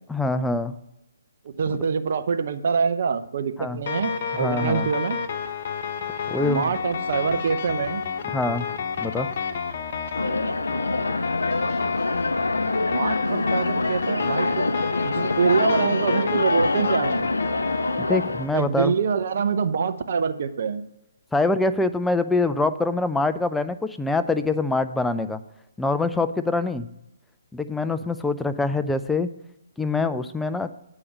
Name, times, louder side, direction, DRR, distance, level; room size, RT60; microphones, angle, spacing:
voice 1, 0.1-0.8 1.7-1.8 3.6-3.8 4.4-4.9 6.3-6.7 8.3-8.7 9.0-9.3 18.0-18.9 21.3-25.4 25.8-26.9 27.5-29.3 29.8-30.7, left 3 dB, 5° left, 10 dB, 0.4 m, -24 dB
voice 2, 1.4-5.2 6.4-8.0 12.8-14.6 15.0-17.3 18.5-20.8, right 6 dB, 55° right, 9 dB, 0.7 m, -25 dB
sound 1, 3.9-18.6, left 6 dB, 50° left, 0.8 m, -30 dB
sound 2, 10.1-18.5, left 2 dB, 90° left, 0.4 m, -25 dB
8.6 x 5.0 x 7.0 m, 0.85 s
figure-of-eight pair, 140°, 0 cm